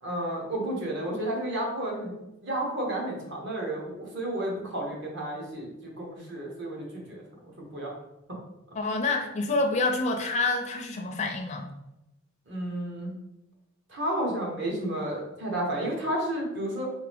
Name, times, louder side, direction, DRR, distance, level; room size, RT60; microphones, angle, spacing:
voice 1, 0.0-2.1 2.4-7.2 7.6-7.9 8.3-8.4 8.9-9.0 12.5-13.2 13.9-16.9, right 1 dB, 55° right, -2 dB, 1.1 m, -32 dB
voice 2, 8.8-11.7, left 3 dB, 30° left, 2 dB, 0.4 m, -27 dB
3.5 x 3.1 x 3.4 m, 0.91 s
head